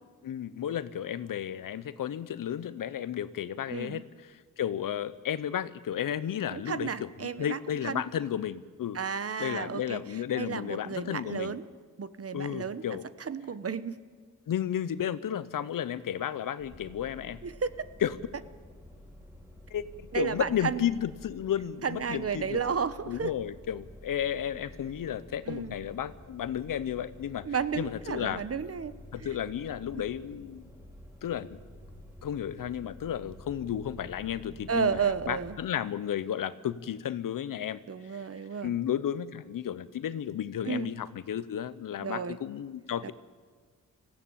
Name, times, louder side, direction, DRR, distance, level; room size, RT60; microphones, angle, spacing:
voice 1, 0.2-4.0 4.6-9.0 9.4-11.5 12.3-13.0 14.5-17.4 18.0-18.1 19.7-19.8 20.1-22.6 23.1-27.5 27.8-28.4 29.1-30.7 31.2-31.6 32.2-37.8 38.6-43.1, left 10 dB, 80° left, 16 dB, 0.8 m, -33 dB
voice 2, 3.7-4.0 6.5-8.0 8.9-11.6 12.0-14.0 17.4-17.7 20.1-20.8 21.8-23.3 25.5-25.7 27.4-28.9 29.2-29.4 30.0-30.1 34.7-35.6 37.9-38.7 40.6-40.9 42.0-42.4 43.0-43.1, right 6 dB, 45° right, 14 dB, 1.0 m, -33 dB
sound 1, 16.6-35.5, left 1 dB, 5° right, 5.2 m, -50 dB
19.0 x 15.5 x 8.7 m, 1.5 s
cardioid pair, 70°, 33 cm